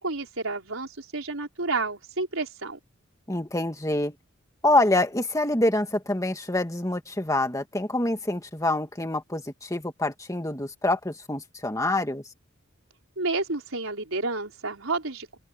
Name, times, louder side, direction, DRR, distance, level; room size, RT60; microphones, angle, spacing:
voice 1, 0.0-2.8 13.2-15.4, right 3 dB, 80° right, 4.4 m, -30 dB
voice 2, 3.3-4.2 4.6-12.2, left 2 dB, 15° left, 2.0 m, -26 dB
open air
head